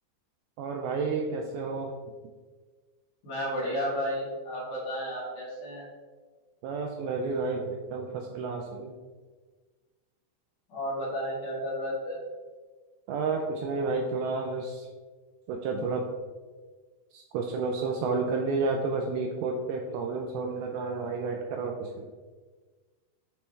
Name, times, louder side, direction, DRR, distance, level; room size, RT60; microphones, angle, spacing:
voice 1, 0.6-1.9 6.6-8.9 13.1-14.9 15.5-16.1 17.1-22.1, right 4 dB, 85° right, 2 dB, 2.2 m, -31 dB
voice 2, 3.2-5.9 10.7-12.2, equal, 60° left, -7 dB, 2.3 m, -32 dB
9.2 x 3.2 x 3.2 m, 1.4 s
omnidirectional pair, 4.8 m